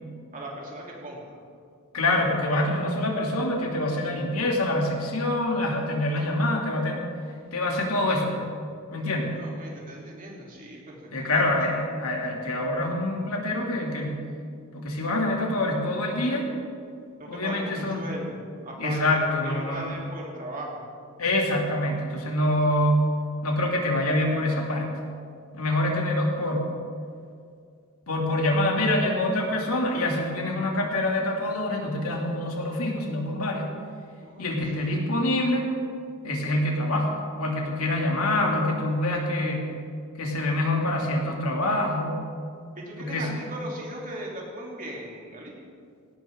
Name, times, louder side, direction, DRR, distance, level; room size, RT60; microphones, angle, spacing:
voice 1, 0.3-1.4 9.3-11.7 17.2-20.8 34.2-35.0 42.8-45.5, right 1 dB, 40° right, -3 dB, 3.6 m, -38 dB
voice 2, 1.9-7.0 7.5-8.5 8.9-9.3 11.1-14.2 14.7-16.5 17.3-18.1 18.8-19.9 21.2-23.1 23.4-24.9 25.5-26.7 28.1-33.7 34.4-35.7 36.2-39.6 40.2-42.2 43.0-43.3, left 1 dB, 70° left, 0 dB, 2.8 m, -25 dB
18.0 x 17.5 x 3.9 m, 2.2 s
head